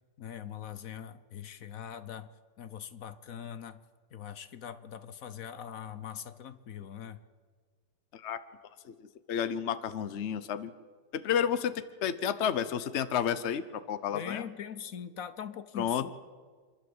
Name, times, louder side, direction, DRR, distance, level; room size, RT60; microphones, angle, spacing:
voice 1, 0.2-2.3 2.6-3.8 4.1-7.2 14.1-16.1, left 8 dB, 60° left, 13 dB, 0.9 m, -42 dB
voice 2, 8.1-8.4 8.8-8.9 9.3-10.7 11.1-14.4 15.8-16.1, left 8 dB, 80° left, 13 dB, 0.6 m, -31 dB
28.0 x 11.5 x 7.9 m, 1.5 s
omnidirectional pair, 2.4 m